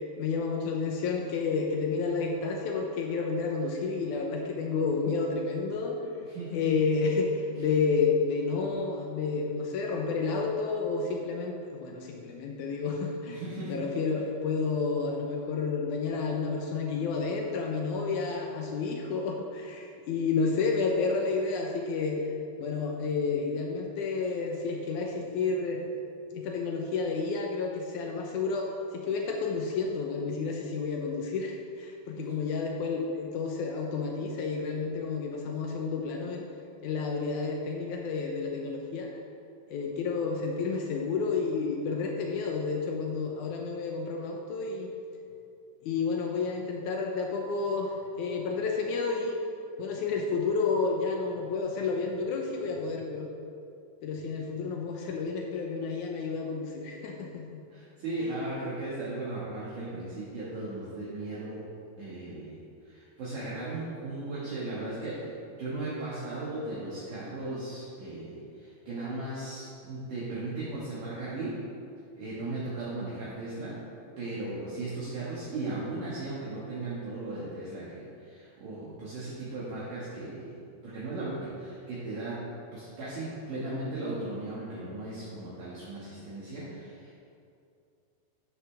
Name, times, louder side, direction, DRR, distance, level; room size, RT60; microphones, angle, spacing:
voice 1, 0.2-6.0 6.5-13.4 13.7-22.3 22.6-25.9 26.3-36.4 36.8-39.1 39.7-44.9 45.8-49.3 49.8-53.3 54.0-57.6, left 4 dB, 85° left, 1 dB, 1.7 m, -30 dB
voice 2, 6.3-6.6 13.3-13.8 32.2-32.3 57.7-61.6 62.0-62.6 62.8-65.3 65.6-71.6 72.1-73.8 74.2-80.5 80.8-82.4 82.7-87.3, right 2 dB, 60° right, -9 dB, 3.1 m, -37 dB
12.5 x 9.7 x 3.4 m, 2.5 s
omnidirectional pair, 4.6 m